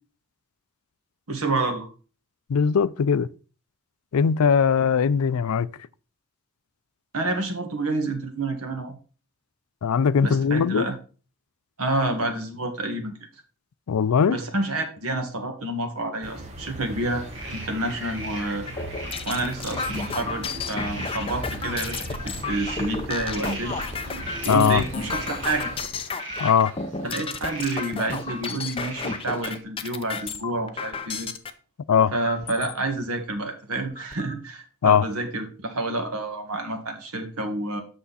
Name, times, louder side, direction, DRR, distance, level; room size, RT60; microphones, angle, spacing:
voice 1, 1.3-1.9 7.1-9.0 10.2-10.9 11.8-13.2 14.2-17.2 17.5-18.7 19.3-23.8 24.4-25.7 27.0-31.3 32.1-37.8, right 2 dB, 80° right, 1.8 m, -29 dB
voice 2, 2.5-3.3 4.1-5.7 9.8-10.9 13.9-14.4 24.5-24.8 26.4-26.7 31.9-32.1 34.8-35.0, left 6 dB, 80° left, 0.4 m, -20 dB
sound 1, 16.2-25.9, equal, 30° right, 1.2 m, -38 dB
sound 2, 16.9-29.6, right 2 dB, 55° right, 2.6 m, -40 dB
sound 3, 18.7-31.5 32.2-32.7 33.3-33.4 33.7-34.3, left 4 dB, 25° left, 0.6 m, -33 dB
8.2 x 6.2 x 4.1 m
head